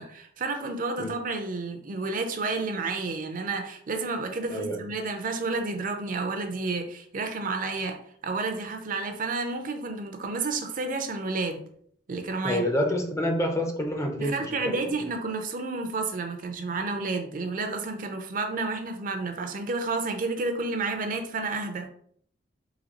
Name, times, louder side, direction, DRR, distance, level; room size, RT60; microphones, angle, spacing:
voice 1, 0.0-11.6 12.1-12.7 14.2-21.9, right 3 dB, 45° right, 6 dB, 0.5 m, -31 dB
voice 2, 12.4-14.8, equal, 15° left, 3 dB, 0.5 m, -27 dB
4.0 x 2.7 x 2.9 m, 0.62 s
head